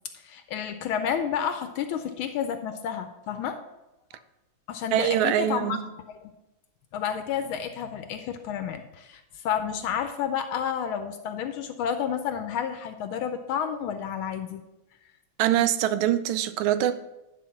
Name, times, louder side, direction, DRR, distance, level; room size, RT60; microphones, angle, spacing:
voice 1, 0.2-3.6 4.7-5.8 6.2-6.3 6.9-14.6, left 8 dB, 80° left, 1.4 m, -30 dB
voice 2, 4.9-5.8 15.4-16.9, right 12 dB, 75° right, 1.3 m, -23 dB
10.5 x 4.2 x 5.8 m
omnidirectional pair, 2.4 m